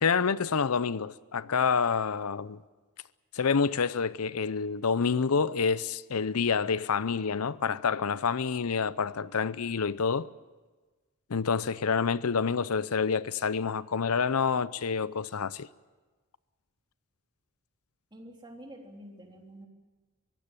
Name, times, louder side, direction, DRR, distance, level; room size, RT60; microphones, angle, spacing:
voice 1, 0.0-2.6 3.3-10.3 11.3-15.7, left 5 dB, 75° left, 0.7 m, -28 dB
voice 2, 18.1-19.7, right 1 dB, 20° right, 3.4 m, -47 dB
23.5 x 15.5 x 9.0 m
head